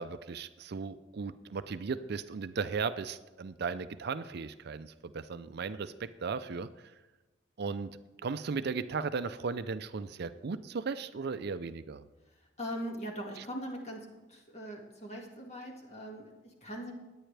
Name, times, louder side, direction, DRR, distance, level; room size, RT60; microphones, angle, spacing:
voice 1, 0.0-6.7 7.6-7.9 8.2-12.1, right 5 dB, 60° right, 13 dB, 0.5 m, -36 dB
voice 2, 12.6-16.9, equal, 35° left, 0 dB, 2.0 m, -41 dB
19.5 x 9.0 x 3.4 m, 1.1 s
head